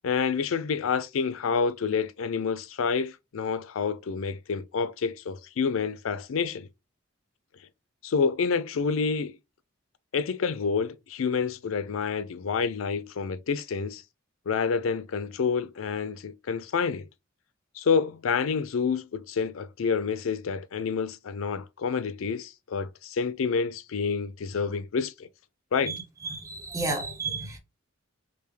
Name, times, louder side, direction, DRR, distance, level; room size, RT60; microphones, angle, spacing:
voice 1, 0.0-6.7 8.0-9.3 10.1-14.0 14.5-17.1 17.8-25.3 25.7-26.0, left 5 dB, 85° left, 0.5 m, -28 dB
voice 2, 25.8-27.6, right 3 dB, 15° right, 0.7 m, -32 dB
3.5 x 2.6 x 3.2 m
head